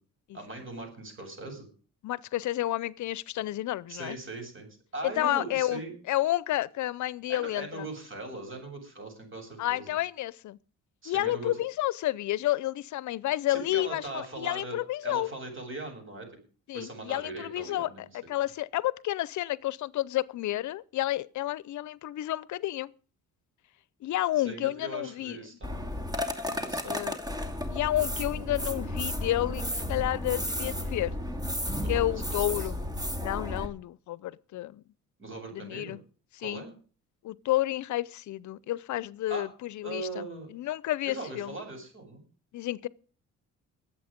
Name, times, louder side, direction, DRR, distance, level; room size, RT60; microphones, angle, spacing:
voice 1, 0.3-1.7 3.9-5.9 7.3-9.9 11.0-11.5 13.5-14.8 15.0-16.3 16.7-18.0 24.4-25.9 26.4-27.0 31.8-32.2 32.5-32.7 35.2-35.9 36.4-36.7 39.3-39.5 39.8-40.5 41.0-42.2, right 2 dB, 40° right, 7.9 m, -40 dB
voice 2, 2.0-4.2 5.0-5.8 6.1-7.9 9.6-10.6 11.1-15.3 16.7-22.9 24.0-25.4 26.8-27.2 27.7-31.1 31.9-32.8 33.2-34.8 35.5-36.0 36.3-36.6 37.2-41.6 42.5-42.9, left 15 dB, 70° left, 0.7 m, -30 dB
sound 1, 25.6-33.7, left 1 dB, 15° right, 2.5 m, -33 dB
22.0 x 8.5 x 5.2 m
cardioid pair, 90°, 30 cm